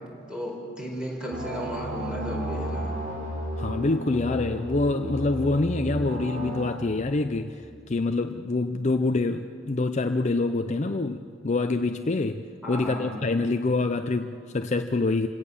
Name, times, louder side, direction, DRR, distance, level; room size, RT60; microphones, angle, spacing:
voice 1, 0.3-3.0 12.6-13.2, equal, 5° right, -1 dB, 4.5 m, -34 dB
sound 1, 1.3-6.7, right 1 dB, 40° right, 3.9 m, -33 dB
voice 2, 3.6-15.3, left 3 dB, 35° left, 8 dB, 0.5 m, -26 dB
27.5 x 17.5 x 7.1 m, 2.2 s
head